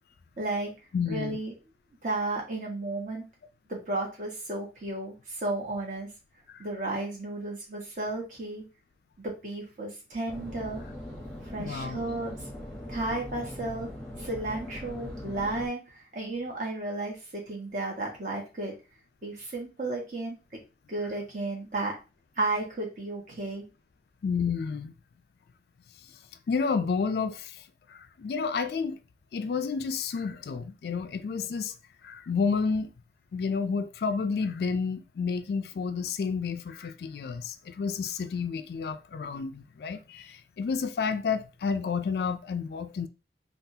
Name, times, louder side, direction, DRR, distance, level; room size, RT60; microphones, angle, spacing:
voice 1, 0.4-0.7 1.1-1.5 2.0-3.2 3.7-6.1 6.6-8.6 9.2-10.8 11.5-12.4 12.9-13.9 14.2-15.8 16.1-18.7 19.2-20.4 20.9-22.0 22.4-23.7, right 2 dB, 45° right, 1.2 m, -33 dB
voice 2, 0.9-1.4 6.5-6.7 11.6-12.0 24.2-24.9 26.5-27.6 27.9-29.0 29.3-31.7 32.0-32.9 33.3-43.1, left 5 dB, 60° left, 0.3 m, -30 dB
sound 1, 10.3-15.7, left 1 dB, 5° left, 0.8 m, -40 dB
3.7 x 2.4 x 2.7 m
head